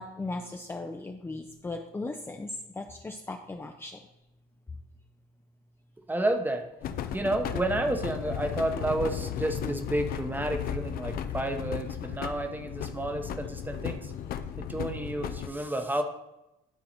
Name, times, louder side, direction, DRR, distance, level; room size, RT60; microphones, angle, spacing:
voice 1, 0.0-2.5 2.8-4.0, left 2 dB, 15° left, 3 dB, 0.5 m, -37 dB
voice 2, 6.1-6.6 7.1-14.0 14.6-16.0, right 1 dB, 10° right, 6 dB, 0.9 m, -30 dB
sound 1, 6.8-15.5, left 9 dB, 60° left, 0.6 m, -35 dB
11.5 x 4.0 x 4.3 m, 0.92 s
cardioid pair, 110°, 17 cm